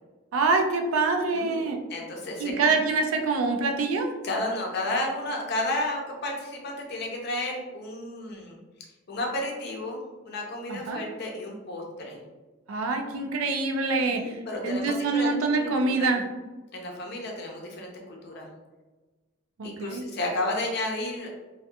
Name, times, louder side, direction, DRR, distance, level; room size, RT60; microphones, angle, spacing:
voice 1, 0.3-1.8 2.4-4.1 10.7-11.1 12.7-16.2 19.6-20.0, right 3 dB, 90° right, 4 dB, 0.4 m, -25 dB
voice 2, 1.3-2.7 4.2-8.6 9.1-10.0 10.3-12.2 14.1-15.3 15.6-16.1 16.7-18.5 19.6-21.3, left 1 dB, 55° left, 0 dB, 0.6 m, -32 dB
2.7 x 2.3 x 2.2 m, 1.2 s
head